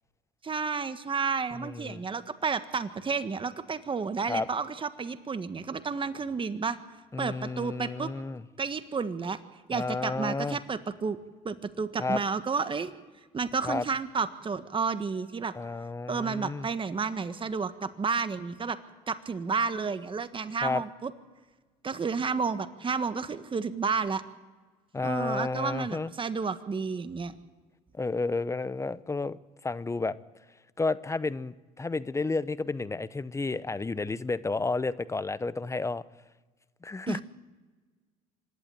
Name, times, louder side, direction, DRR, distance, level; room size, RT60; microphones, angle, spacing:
voice 1, 0.4-6.8 7.2-8.1 8.6-9.4 9.7-11.2 11.4-12.9 13.3-15.5 16.1-18.8 19.1-21.1 21.8-24.2 25.0-27.3 37.1-37.2, right 5 dB, 30° right, 11 dB, 1.5 m, -31 dB
voice 2, 1.5-2.1 4.3-4.5 7.1-8.4 9.7-10.6 12.0-12.2 13.6-13.8 15.5-16.7 20.6-20.8 24.9-26.1 27.9-30.2 30.8-36.0 36.8-37.2, left 3 dB, 15° left, 17 dB, 0.8 m, -31 dB
25.0 x 11.5 x 9.0 m, 1.4 s
supercardioid pair, 75°, 17 cm